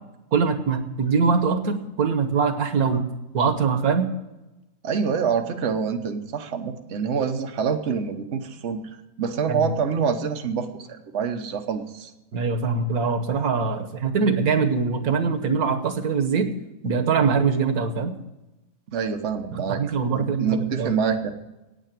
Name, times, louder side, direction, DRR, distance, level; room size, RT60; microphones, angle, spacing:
voice 1, 0.3-3.1 3.3-4.1 9.5-9.7 12.3-16.5 16.8-18.1 19.5-20.9, right 5 dB, 85° right, 8 dB, 1.6 m, -23 dB
voice 2, 4.8-12.1 18.9-19.8 20.2-21.3, right 6 dB, 55° right, 4 dB, 1.2 m, -26 dB
9.2 x 8.7 x 8.9 m, 0.99 s
omnidirectional pair, 1.5 m